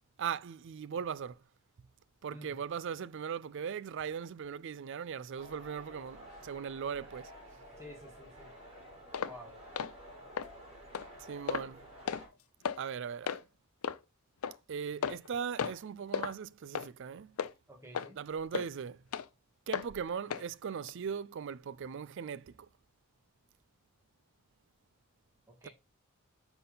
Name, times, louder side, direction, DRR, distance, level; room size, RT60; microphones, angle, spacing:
voice 1, 0.2-1.4 2.2-7.3 11.3-11.9 12.8-13.5 14.7-17.4 18.2-19.0 19.7-22.6 25.6-25.7, right 7 dB, 55° right, 0.4 m, -39 dB
sound 1, 5.4-12.3, equal, 30° right, 3.5 m, -52 dB
voice 2, 7.8-8.5 9.2-9.5 17.7-18.2 25.5-25.7, equal, 15° right, 1.6 m, -50 dB
sound 2, 9.1-9.4 9.8-9.9 10.4-10.5 10.9-11.1 11.5-11.7 12.1-12.2 12.6-12.8 13.3-13.4 13.8-14.0 14.4-14.6 15.0-15.3 15.6-15.8 16.1-16.3 16.7-16.9 17.4-17.5 17.9-18.1 18.5-18.7 19.1-19.3 19.7-19.9 20.3-20.5 20.9-21.0, left 7 dB, 85° left, 0.5 m, -34 dB
9.5 x 4.0 x 3.9 m
head